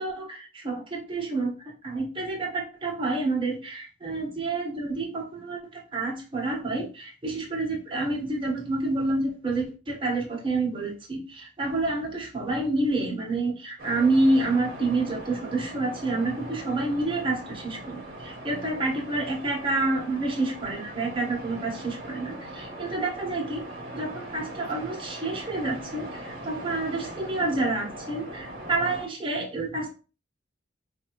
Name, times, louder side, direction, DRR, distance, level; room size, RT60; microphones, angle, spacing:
voice 1, 0.0-1.5 1.8-23.7 23.9-29.9, right 2 dB, 25° right, -2 dB, 1.2 m, -28 dB
sound 1, 13.8-29.0, right 1 dB, 50° right, 1.2 m, -40 dB
4.6 x 2.6 x 3.0 m, 0.33 s
head